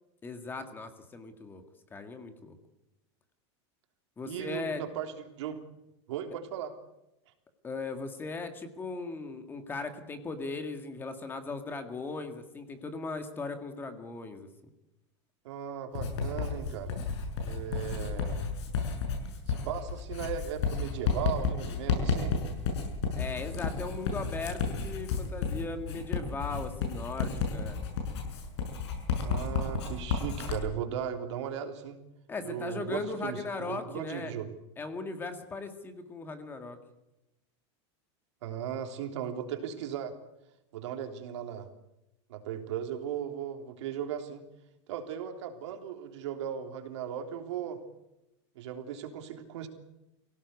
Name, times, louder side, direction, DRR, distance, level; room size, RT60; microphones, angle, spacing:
voice 1, 0.2-1.6 1.9-2.6 4.2-4.8 7.6-14.5 23.2-27.8 32.3-34.3 34.8-36.8, left 3 dB, 15° left, 7 dB, 1.9 m, -38 dB
voice 2, 4.3-5.6 6.1-6.7 15.4-16.9 17.4-18.4 19.5-22.4 29.2-32.0 32.4-34.5 38.4-40.1 40.7-41.7 42.3-44.4 44.9-47.8 48.6-49.7, right 9 dB, 75° right, 5 dB, 3.4 m, -37 dB
Writing, 16.0-30.6, left 5 dB, 70° left, 7.0 m, -32 dB
25.0 x 17.0 x 8.3 m, 0.91 s
supercardioid pair, 165°, 15 cm